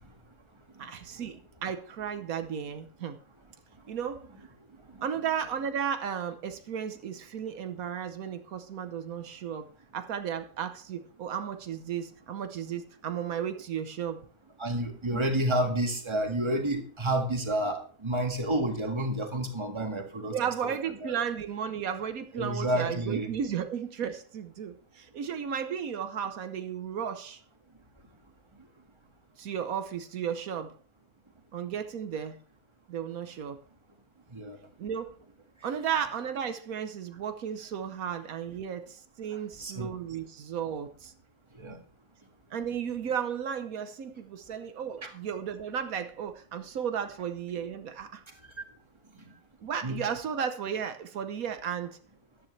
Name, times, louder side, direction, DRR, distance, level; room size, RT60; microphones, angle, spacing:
voice 1, 0.8-3.2 3.9-4.3 5.0-9.7 9.9-14.2 20.3-27.4 29.4-30.7 31.5-32.4 32.9-33.6 34.8-35.2 35.6-41.1 42.5-48.2 49.6-52.0, right 8 dB, 80° right, 9 dB, 1.3 m, -34 dB
voice 2, 14.6-20.7 21.0-21.1 22.3-23.3 34.3-34.6 39.6-39.9 41.6-41.8 45.0-45.1 49.8-50.0, right 1 dB, 20° right, 4 dB, 1.7 m, -30 dB
13.5 x 10.5 x 3.2 m, 0.43 s
omnidirectional pair, 1.5 m